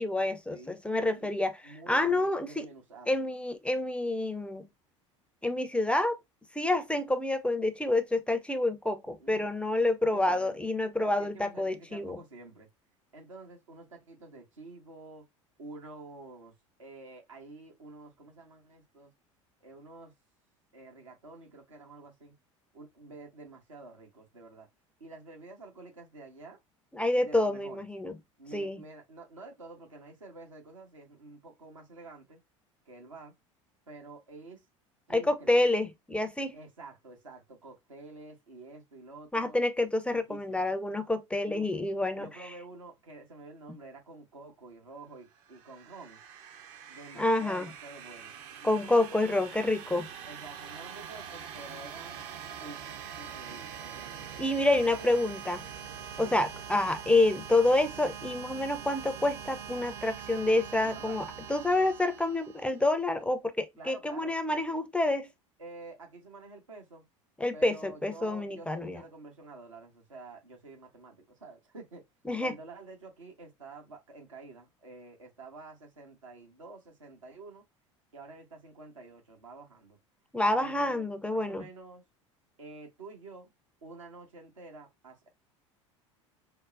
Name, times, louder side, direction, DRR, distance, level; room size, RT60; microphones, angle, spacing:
voice 1, 0.0-1.6 1.9-2.7 3.1-4.7 5.4-6.2 6.5-12.2 26.9-28.1 28.5-28.8 35.1-36.6 39.3-42.3 47.2-47.7 48.6-50.1 54.4-55.6 56.2-65.3 67.4-69.0 72.3-72.5 80.3-81.6, left 2 dB, 5° left, 0.5 m, -28 dB
voice 2, 0.5-1.3 1.6-3.2 9.2-9.6 10.1-10.6 11.0-12.7 13.1-15.3 15.6-16.5 16.8-19.1 19.6-20.1 20.7-22.3 22.7-24.7 25.0-26.6 27.1-27.8 28.4-32.4 32.9-33.3 33.9-34.6 35.1-35.8 36.5-39.6 40.1-40.7 41.4-41.7 42.1-46.2 46.9-48.3 48.6-49.0 50.3-52.2 52.6-54.4 54.9-55.1 56.2-56.4 60.8-61.2 63.8-64.3 65.6-67.0 67.5-72.0 72.4-77.6 78.1-80.0 80.6-82.0 82.6-83.5 83.8-85.3, right 3 dB, 80° right, 1.2 m, -49 dB
sound 1, 45.3-63.0, right 8 dB, 55° right, 0.7 m, -44 dB
5.0 x 2.0 x 2.4 m
figure-of-eight pair, 75°, 16 cm